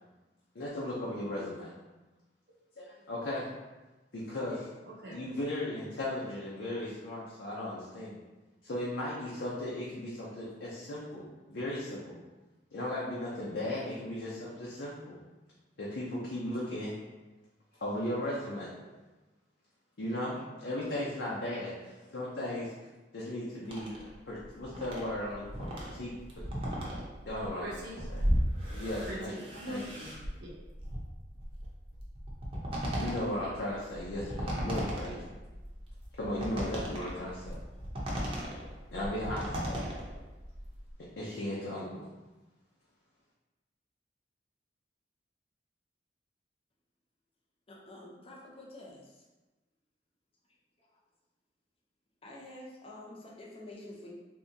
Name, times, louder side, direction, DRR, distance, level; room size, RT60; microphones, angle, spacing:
voice 1, 0.5-1.7 2.8-3.5 4.1-4.7 5.1-8.1 8.6-12.2 12.7-15.2 15.8-16.9 17.8-18.7 20.0-22.7 23.1-23.9 24.3-26.4 27.3-27.7 28.1-28.2 28.7-29.8 32.9-35.3 36.2-37.6 38.9-39.9 41.2-42.1, left 1 dB, 80° left, -7 dB, 0.7 m, -36 dB
voice 2, 1.3-1.6 4.9-5.4 27.6-28.0 29.1-30.6, right 1 dB, 65° right, -5 dB, 0.7 m, -43 dB
sound 1, 23.7-40.9, equal, 30° right, 0.7 m, -36 dB
voice 3, 47.7-49.2 50.8-51.0 52.2-54.1, left 1 dB, 35° left, -3 dB, 0.6 m, -48 dB
3.6 x 2.7 x 2.7 m, 1.1 s
head